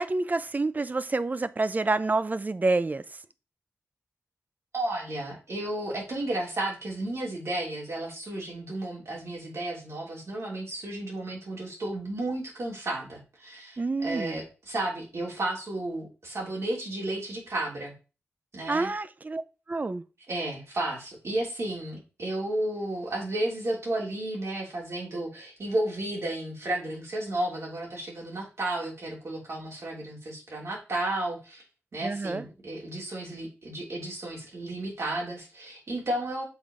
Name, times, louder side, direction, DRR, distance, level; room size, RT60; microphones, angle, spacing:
voice 1, 0.0-3.0 13.8-14.4 18.7-19.4 19.7-20.0 32.0-32.4, right 3 dB, 35° right, 0.5 m, -28 dB
voice 2, 4.7-17.9 18.5-18.9 20.3-31.6 31.9-36.5, right 1 dB, 70° right, 3.3 m, -33 dB
7.0 x 4.0 x 4.9 m
wide cardioid pair, 75°, 5 cm